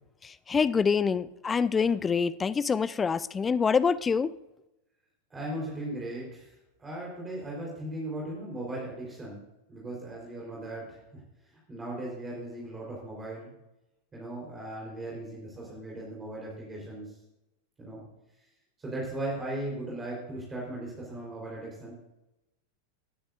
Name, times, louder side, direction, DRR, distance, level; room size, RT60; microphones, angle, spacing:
voice 1, 0.2-4.3, left 5 dB, 15° left, 0.4 m, -26 dB
voice 2, 5.3-9.4 9.7-11.2 11.5-13.5 14.1-17.1 17.8-18.0 18.8-21.9, right 1 dB, 15° right, 4.2 m, -38 dB
17.5 x 10.0 x 2.6 m
figure-of-eight pair, 90°, 0 cm